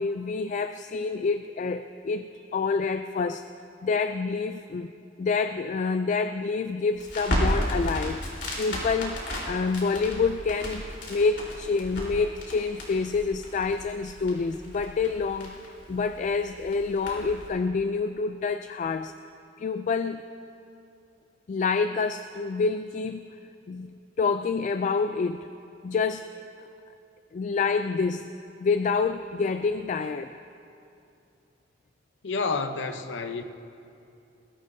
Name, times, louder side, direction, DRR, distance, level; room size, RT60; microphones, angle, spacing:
voice 1, 0.0-3.4 3.8-4.9 5.2-8.2 8.6-9.2 9.4-15.6 15.9-19.1 19.6-20.2 21.5-23.3 23.7-25.5 25.8-26.3 27.3-28.3 28.6-30.4, left 4 dB, 45° left, 10 dB, 0.3 m, -27 dB
Crackle, 6.9-17.5, equal, 70° left, 3.7 m, -34 dB
voice 2, 32.2-33.4, left 4 dB, 90° left, 7 dB, 0.7 m, -29 dB
21.0 x 14.5 x 2.7 m, 2.6 s
head